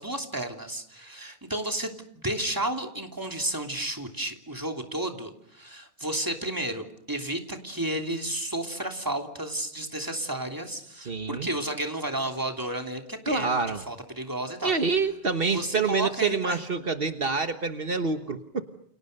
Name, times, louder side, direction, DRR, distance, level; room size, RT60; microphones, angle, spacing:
voice 1, 0.0-14.7 15.5-16.6, right 1 dB, 20° right, 4 dB, 3.1 m, -32 dB
voice 2, 11.0-11.5 13.3-13.8 14.6-18.6, right 4 dB, 65° right, 7 dB, 1.6 m, -27 dB
29.5 x 29.5 x 6.7 m, 0.69 s
omnidirectional pair, 1.1 m